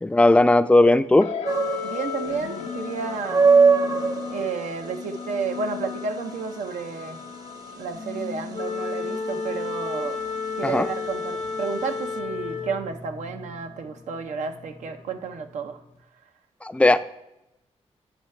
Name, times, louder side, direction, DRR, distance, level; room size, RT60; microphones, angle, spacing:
voice 1, 0.0-1.3 10.6-10.9 16.6-17.0, left 2 dB, 10° left, 10 dB, 0.4 m, -17 dB
sound 1, 1.2-16.0, left 6 dB, 90° left, 0.6 m, -38 dB
sound 2, 1.4-12.2, right 5 dB, 30° right, 0.6 m, -25 dB
voice 2, 1.8-3.5 4.3-7.2 7.8-10.2 10.6-15.8, right 5 dB, 85° right, 7 dB, 0.6 m, -31 dB
Wind instrument woodwind instrument, 8.5-12.9, left 4 dB, 55° left, 0.7 m, -31 dB
8.9 x 5.5 x 3.2 m, 0.89 s
cardioid pair, 80°, 12 cm